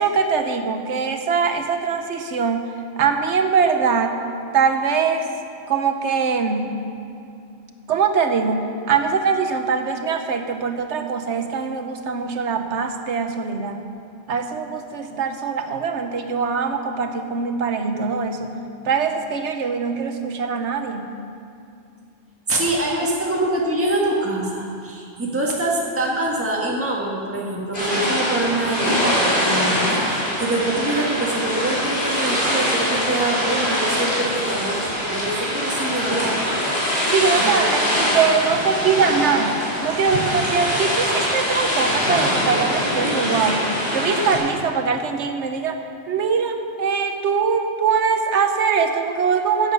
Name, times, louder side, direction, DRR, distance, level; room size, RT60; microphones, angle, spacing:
voice 1, 0.0-2.6 3.0-4.2 4.5-5.3 5.7-6.8 7.9-13.8 14.3-18.5 18.8-21.1 37.1-49.7, right 5 dB, 85° right, 6 dB, 1.2 m, -22 dB
voice 2, 22.5-36.3 37.4-37.6, right 2 dB, 10° right, -3 dB, 1.5 m, -25 dB
sound 1, 27.7-44.4, equal, 50° left, 3.4 m, -23 dB
14.5 x 7.8 x 5.5 m, 2.5 s
omnidirectional pair, 1.1 m